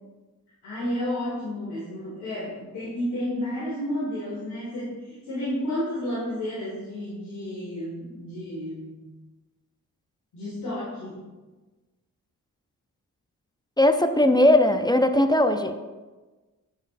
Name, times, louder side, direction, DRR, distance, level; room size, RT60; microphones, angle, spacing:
voice 1, 0.6-9.0 10.3-11.2, left 1 dB, 90° left, -9 dB, 1.8 m, -31 dB
voice 2, 13.8-15.8, left 1 dB, 10° left, 8 dB, 0.5 m, -19 dB
7.8 x 5.9 x 2.5 m, 1.2 s
supercardioid pair, 40°, 39 cm